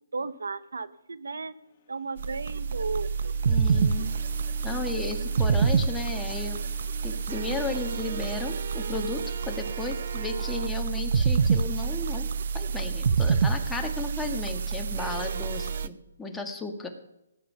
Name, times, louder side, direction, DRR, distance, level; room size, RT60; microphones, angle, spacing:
voice 1, 0.1-1.5 1.9-3.3, right 4 dB, 90° right, 14 dB, 1.1 m, -34 dB
sound 1, 1.3-9.5, left 8 dB, 35° left, 2.6 m, -53 dB
sound 2, 2.2-15.9, right 5 dB, 55° right, 0.8 m, -27 dB
voice 2, 3.5-4.1 4.6-6.6 7.0-16.9, left 3 dB, 5° left, 3 dB, 1.6 m, -34 dB
18.5 x 10.0 x 5.6 m, 0.88 s
hypercardioid pair, 160°, 0 cm